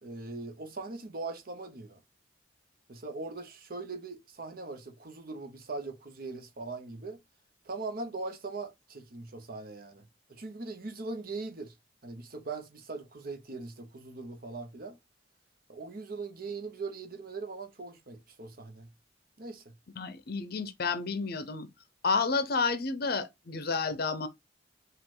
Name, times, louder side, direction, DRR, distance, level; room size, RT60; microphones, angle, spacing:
voice 1, 0.0-2.0 2.9-7.2 7.6-11.7 12.0-15.0 15.7-18.9 19.4-19.8, right 3 dB, 55° right, 0.9 m, -40 dB
voice 2, 20.0-21.7 22.0-24.3, left 4 dB, 55° left, 0.7 m, -30 dB
5.0 x 2.5 x 3.8 m
head